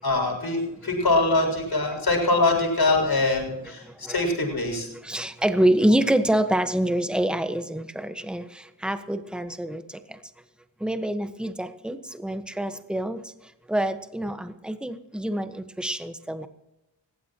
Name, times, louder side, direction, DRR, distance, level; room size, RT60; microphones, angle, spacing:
voice 1, 0.0-4.9, left 2 dB, 55° left, 0 dB, 6.8 m, -23 dB
voice 2, 5.0-9.8 10.8-13.2 13.7-16.5, right 1 dB, ahead, 9 dB, 1.3 m, -26 dB
21.0 x 15.5 x 3.0 m, 0.94 s
cardioid pair, 60°, 44 cm